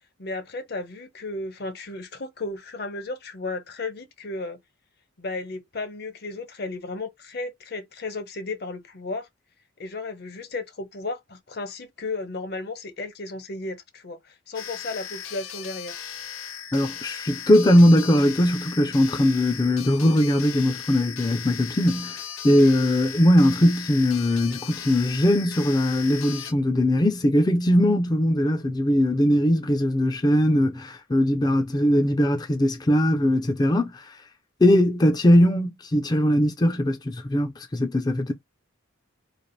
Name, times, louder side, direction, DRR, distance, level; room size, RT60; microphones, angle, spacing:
voice 1, 0.2-4.6 5.2-9.3 9.8-16.0, left 3 dB, 50° left, 0.8 m, -34 dB
sound 1, 14.5-26.5, left 9 dB, 80° left, 0.8 m, -37 dB
voice 2, 16.7-34.0 34.6-38.3, left 1 dB, 20° left, 0.4 m, -20 dB
3.3 x 2.4 x 4.0 m
head